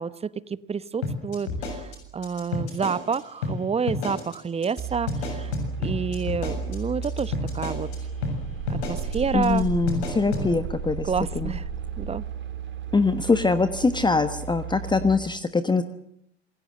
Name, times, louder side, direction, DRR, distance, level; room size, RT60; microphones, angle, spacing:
voice 1, 0.0-5.5 5.8-7.9 8.7-9.7 10.4-10.6 11.0-11.7 12.0-12.3, right 6 dB, 20° right, 19 dB, 0.9 m, -29 dB
sound 1, 1.0-3.2 3.4-3.6 3.9-4.4 4.6-4.8 5.1-8.0 8.2-8.4 8.7-9.2 9.4-9.6 9.9-10.5, left 4 dB, 70° left, 7.2 m, -30 dB
sound 2, 4.8-15.1, right 6 dB, 35° right, 3.9 m, -33 dB
voice 2, 9.3-11.1 11.3-11.5 12.9-15.8, left 3 dB, 15° left, 11 dB, 1.3 m, -23 dB
27.0 x 20.0 x 7.7 m, 0.73 s
figure-of-eight pair, 70°, 33 cm